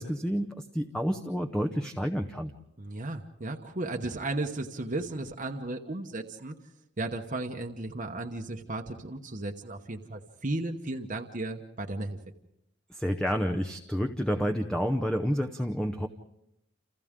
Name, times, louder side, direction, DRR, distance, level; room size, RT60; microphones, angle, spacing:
voice 1, 0.0-2.5 12.9-16.1, equal, 5° left, 4 dB, 0.7 m, -29 dB
voice 2, 2.8-6.5 7.0-12.2, right 2 dB, 35° right, 2 dB, 1.0 m, -35 dB
29.5 x 28.0 x 3.7 m, 0.83 s
head